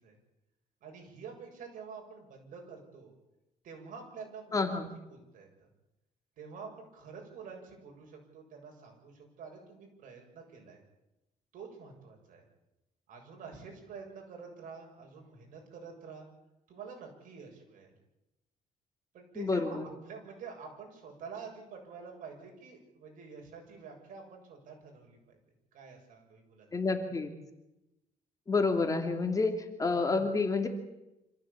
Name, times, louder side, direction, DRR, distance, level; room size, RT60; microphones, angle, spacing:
voice 1, 0.8-3.2 3.6-5.7 6.4-10.8 11.5-12.5 13.1-16.3 16.7-17.9 19.1-25.4 25.7-26.7, right 5 dB, 70° right, 2 dB, 7.4 m, -48 dB
voice 2, 4.5-4.9 19.4-19.9 26.7-27.3 28.5-30.7, left 3 dB, 25° left, 5 dB, 2.8 m, -29 dB
26.5 x 15.5 x 8.6 m, 0.94 s
cardioid pair, 130°, 14 cm